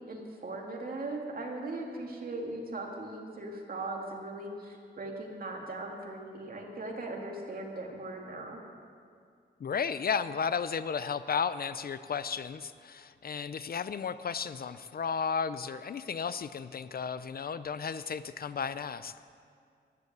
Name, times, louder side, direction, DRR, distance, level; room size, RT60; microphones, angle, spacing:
voice 1, 0.0-8.6, right 2 dB, 50° right, 0 dB, 2.4 m, -39 dB
voice 2, 9.6-19.1, left 6 dB, 50° left, 14 dB, 0.5 m, -34 dB
14.0 x 11.0 x 8.1 m, 2.2 s
wide cardioid pair, 135°, 19 cm